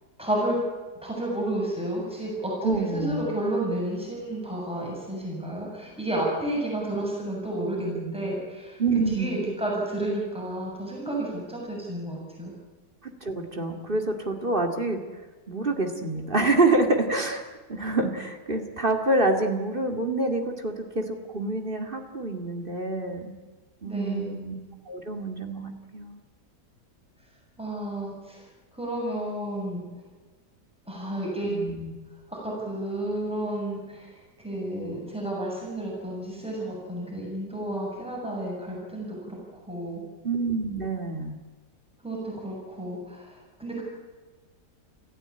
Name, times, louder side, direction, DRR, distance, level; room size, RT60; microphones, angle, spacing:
voice 1, 0.2-0.6 1.0-8.8 9.1-12.5 23.8-24.3 27.6-28.4 28.7-29.8 30.9-31.5 32.3-34.1 34.4-40.0 42.0-43.8, right 1 dB, 5° right, -3 dB, 7.5 m, -31 dB
voice 2, 2.6-3.3 8.8-9.4 13.2-15.0 15.5-23.3 23.8-24.5 24.9-26.2 31.4-31.9 40.2-41.4, right 2 dB, 30° right, 5 dB, 2.4 m, -27 dB
27.0 x 15.0 x 8.8 m, 1.3 s
omnidirectional pair, 1.8 m